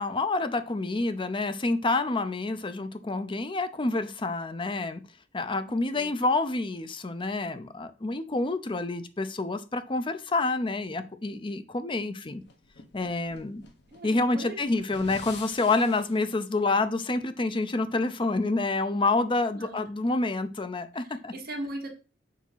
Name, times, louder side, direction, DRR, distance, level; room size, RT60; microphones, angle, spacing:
voice 1, 0.0-5.0 5.3-12.4 12.9-13.6 14.0-21.3, left 3 dB, 25° left, 0.6 m, -28 dB
voice 2, 5.6-6.1 13.9-14.6 19.5-19.9 21.0-21.9, right 1 dB, 55° right, 1.6 m, -39 dB
sound 1, 12.4-16.3, left 4 dB, 65° left, 1.2 m, -48 dB
7.3 x 2.9 x 5.5 m
head